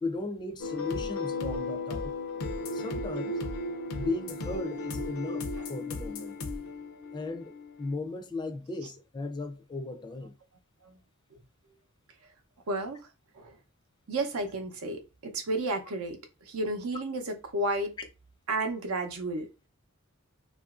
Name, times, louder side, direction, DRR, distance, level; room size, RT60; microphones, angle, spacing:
voice 1, 0.0-2.1 2.7-3.4 3.9-6.3 7.1-10.4, left 3 dB, 20° left, 0.3 m, -36 dB
sound 1, 0.6-7.9, left 2 dB, 80° left, 0.5 m, -35 dB
voice 2, 12.7-13.1 13.3-13.6 14.1-17.9 18.5-19.5, right 2 dB, 90° right, 0.6 m, -32 dB
2.9 x 2.4 x 2.4 m
head